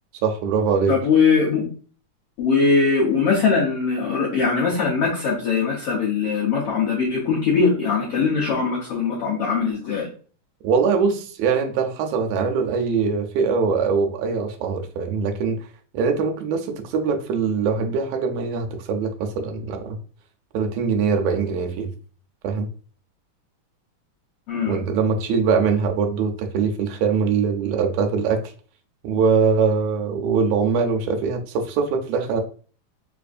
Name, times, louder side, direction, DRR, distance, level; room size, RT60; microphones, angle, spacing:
voice 1, 0.2-1.0 10.6-15.6 15.9-20.0 20.5-21.9 22.4-22.7 24.6-28.5 29.0-32.4, right 5 dB, 80° right, 4 dB, 1.9 m, -22 dB
voice 2, 0.9-1.6 2.4-10.1 24.5-24.8, left 5 dB, 75° left, -4 dB, 1.3 m, -21 dB
4.8 x 2.5 x 2.4 m, 0.42 s
omnidirectional pair, 3.6 m